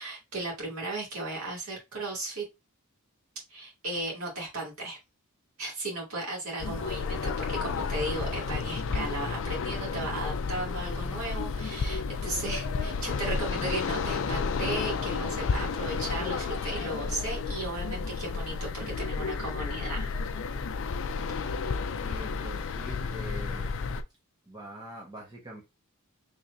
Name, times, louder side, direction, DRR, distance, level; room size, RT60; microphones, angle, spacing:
voice 1, 0.0-2.4 3.5-5.0 5.6-20.1, right 2 dB, 70° right, -2 dB, 2.3 m, -36 dB
sound 1, 6.6-24.0, left 4 dB, 60° left, 0.4 m, -32 dB
voice 2, 22.0-23.8 24.5-25.6, equal, 20° right, -2 dB, 1.1 m, -44 dB
4.3 x 3.2 x 2.6 m, 0.24 s
head